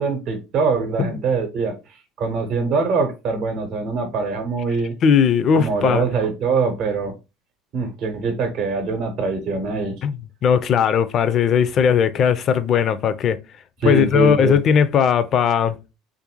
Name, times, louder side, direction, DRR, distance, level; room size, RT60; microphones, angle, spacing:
voice 1, 0.0-4.9 5.5-7.1 7.7-10.0 13.8-14.6, right 4 dB, 60° right, 0.8 m, -23 dB
voice 2, 5.0-6.0 10.0-10.2 10.4-13.4 13.8-15.8, left 7 dB, 50° left, 0.4 m, -18 dB
3.3 x 2.5 x 2.9 m
hypercardioid pair, 70°, 0 cm